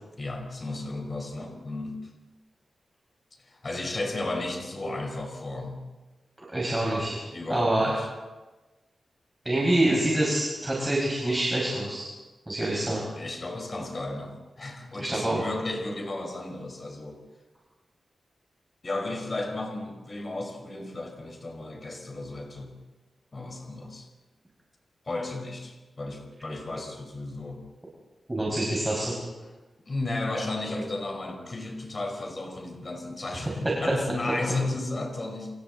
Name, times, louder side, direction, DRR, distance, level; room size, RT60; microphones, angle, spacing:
voice 1, 0.2-2.1 3.4-5.8 7.3-8.1 13.2-17.2 18.8-22.7 23.3-24.1 25.0-27.6 29.9-35.5, left 2 dB, 35° left, 2 dB, 4.7 m, -34 dB
voice 2, 6.4-7.2 7.5-7.9 9.4-12.1 12.5-13.0 15.0-15.4 28.3-29.1, right 1 dB, 15° right, -4 dB, 5.9 m, -26 dB
29.5 x 28.0 x 4.1 m, 1.2 s
wide cardioid pair, 145°, 0 cm